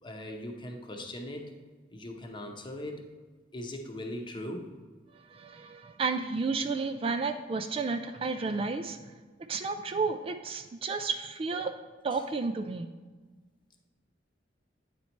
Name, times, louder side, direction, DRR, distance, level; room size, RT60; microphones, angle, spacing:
voice 1, 0.0-1.5 1.9-3.1 3.5-4.7 12.1-12.2, left 1 dB, 25° left, 3 dB, 0.8 m, -39 dB
voice 2, 5.3-9.0 9.5-11.7 12.0-12.9, right 4 dB, 30° right, 7 dB, 0.3 m, -32 dB
9.1 x 4.2 x 4.4 m, 1.3 s
head